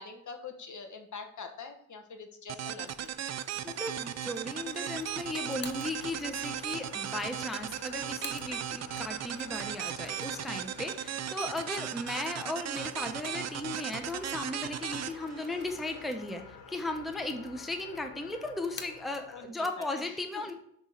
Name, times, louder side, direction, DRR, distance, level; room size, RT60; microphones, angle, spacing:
voice 1, 0.0-3.1 19.3-20.5, left 4 dB, 50° left, 6 dB, 1.1 m, -45 dB
sound 1, 2.5-16.1, right 10 dB, 45° right, 0.4 m, -37 dB
sound 2, 2.7-19.5, left 7 dB, 80° left, 0.7 m, -51 dB
sound 3, 2.9-8.9 9.2-14.7 15.1-15.2 16.0-16.7 17.0-17.8 18.0-19.2, left 4 dB, 30° left, 0.8 m, -53 dB
voice 2, 3.6-20.6, left 2 dB, ahead, 5 dB, 0.6 m, -36 dB
6.0 x 3.1 x 5.5 m, 0.70 s
cardioid pair, 70°, 37 cm